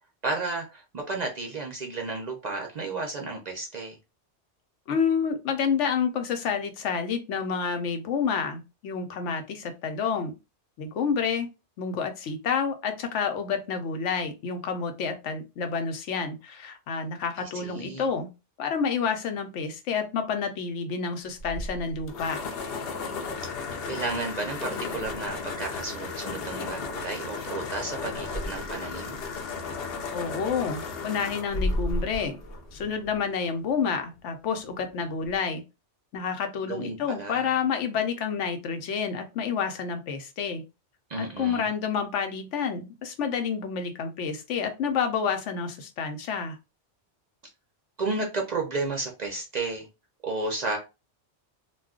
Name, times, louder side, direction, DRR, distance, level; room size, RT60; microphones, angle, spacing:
voice 1, 0.2-4.0 17.4-18.1 23.8-29.2 36.6-37.5 41.1-41.7 48.0-49.9 50.2-50.8, right 3 dB, 55° right, 0.5 m, -32 dB
voice 2, 4.9-10.3 10.8-11.5 11.8-18.3 18.6-22.4 30.1-32.4 32.7-35.6 36.1-40.6 41.2-46.6, left 6 dB, 85° left, 1.0 m, -29 dB
sound 1, 21.4-33.2, left 3 dB, 60° left, 0.7 m, -34 dB
2.3 x 2.2 x 3.5 m
omnidirectional pair, 1.2 m